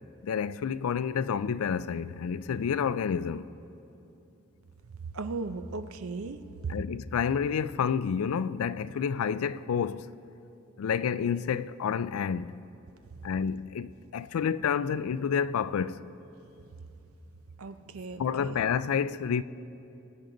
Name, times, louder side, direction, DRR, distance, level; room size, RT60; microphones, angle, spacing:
voice 1, 0.2-3.5 6.7-10.1 10.8-12.6 13.2-16.1 18.2-19.4, left 7 dB, 85° left, 0.4 m, -29 dB
voice 2, 5.0-6.7 17.6-18.6, right 4 dB, 85° right, 0.6 m, -37 dB
22.5 x 9.1 x 3.9 m
head